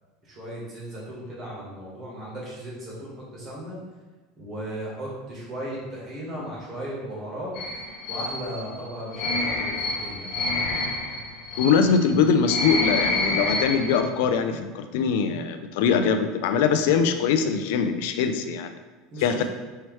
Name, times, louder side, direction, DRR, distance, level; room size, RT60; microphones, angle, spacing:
voice 1, 0.2-3.8 4.4-7.5 8.1-10.6 19.1-19.4, equal, 25° right, -6 dB, 1.4 m, -36 dB
sound 1, 7.5-14.0, left 2 dB, 45° left, 0.8 m, -28 dB
voice 2, 11.6-18.7 19.2-19.4, left 6 dB, 65° left, 8 dB, 0.4 m, -22 dB
5.6 x 3.1 x 3.1 m, 1.2 s
supercardioid pair, 175°, 0 cm